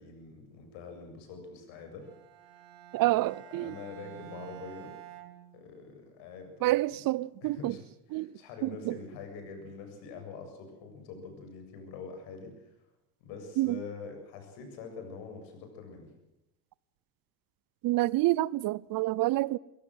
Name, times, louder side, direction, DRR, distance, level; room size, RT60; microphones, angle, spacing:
voice 1, 0.0-2.1 2.5-2.6 3.0-3.3 3.5-4.9 5.5-7.0 7.4-7.8 8.1-12.7 13.2-16.1, left 5 dB, 70° left, 7.6 m, -45 dB
Bowed string instrument, 2.0-6.1, right 13 dB, 65° right, 3.7 m, -50 dB
voice 2, 2.9-3.8 6.6-7.8 8.1-8.3 8.6-9.0 13.6-13.8 17.8-19.6, right 17 dB, 50° right, 0.7 m, -28 dB
24.0 x 17.0 x 7.8 m
hypercardioid pair, 80°, 45 cm